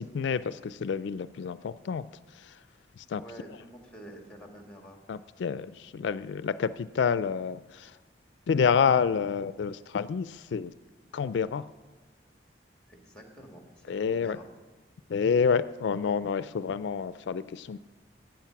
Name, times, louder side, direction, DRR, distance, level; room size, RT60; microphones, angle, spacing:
voice 1, 0.0-2.0 3.1-3.2 5.1-7.9 8.5-10.7 11.1-11.6 13.9-14.4 15.1-17.8, left 6 dB, 80° left, 15 dB, 0.4 m, -28 dB
voice 2, 3.2-5.0 12.9-14.5, right 1 dB, 5° left, 3 dB, 1.8 m, -48 dB
15.0 x 8.7 x 5.8 m, 1.3 s
head